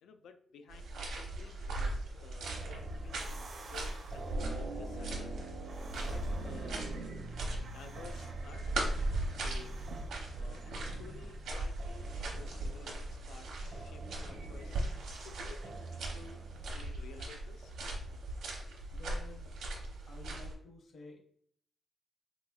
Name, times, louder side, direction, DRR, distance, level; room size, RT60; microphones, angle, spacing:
voice 1, 0.0-5.4 6.0-6.9 7.6-9.8 10.3-14.9 15.2-16.4 16.7-17.7, left 6 dB, 85° left, 8 dB, 0.3 m, -54 dB
sound 1, 0.7-20.5, right 2 dB, 75° right, 0.8 m, -39 dB
sound 2, 2.4-16.9, right 2 dB, 45° right, 0.5 m, -46 dB
voice 2, 18.9-19.5 20.1-21.2, left 3 dB, 45° left, 1 dB, 0.7 m, -51 dB
3.9 x 3.0 x 2.2 m, 0.64 s
wide cardioid pair, 170°, 0 cm